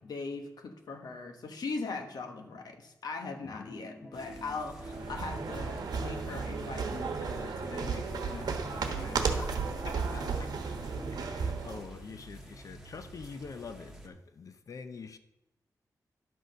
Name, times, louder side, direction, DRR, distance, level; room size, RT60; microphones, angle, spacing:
voice 1, 0.0-9.6 9.8-10.3, left 4 dB, 75° left, 1.1 m, -40 dB
voice 2, 3.4-3.7 9.9-10.5 11.1-15.2, left 5 dB, 55° left, 0.7 m, -45 dB
sound 1, 3.5-7.9 8.2-8.3 9.0-11.2, equal, 10° left, 2.1 m, -49 dB
sound 2, 4.1-14.1, right 2 dB, 5° right, 1.5 m, -50 dB
getting downstairs, 4.7-11.9, right 5 dB, 90° right, 1.1 m, -34 dB
11.0 x 6.3 x 5.2 m
wide cardioid pair, 115°, 7 cm